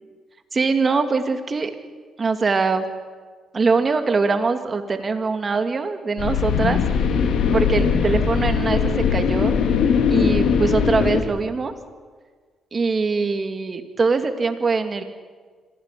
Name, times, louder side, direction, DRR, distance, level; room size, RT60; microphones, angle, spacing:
voice 1, 0.5-1.7 2.2-2.9 3.5-6.8 7.5-9.6 10.1-11.7 12.7-15.0, right 4 dB, 35° right, 7 dB, 2.3 m, -22 dB
sound 1, 6.2-11.2, left 6 dB, 75° left, 2.6 m, -20 dB
25.5 x 16.0 x 8.3 m, 1.5 s
cardioid pair, 90°, 0 cm